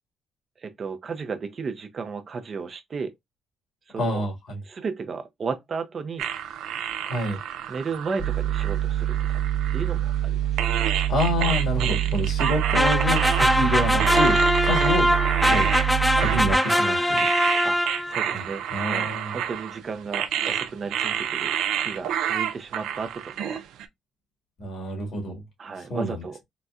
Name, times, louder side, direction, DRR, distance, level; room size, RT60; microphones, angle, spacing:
voice 1, 0.6-3.1 3.9-4.3 4.6-6.3 7.7-9.4 9.7-10.6 17.6-17.8 18.0-23.6 25.6-26.4, right 5 dB, 45° right, 0.6 m, -34 dB
voice 2, 4.0-4.6 7.0-7.4 11.1-15.1 15.5-15.7 16.2-17.3 18.3-18.4 18.7-19.4 24.6-25.4 25.9-26.3, left 1 dB, 70° left, 1.8 m, -28 dB
sound 1, 6.2-10.2 10.6-23.9, right 10 dB, 85° right, 0.4 m, -29 dB
sound 2, 8.2-16.6, right 11 dB, 25° right, 1.0 m, -26 dB
sound 3, 12.7-18.3, left 1 dB, 5° left, 0.3 m, -22 dB
4.0 x 2.1 x 2.4 m
cardioid pair, 90°, 0 cm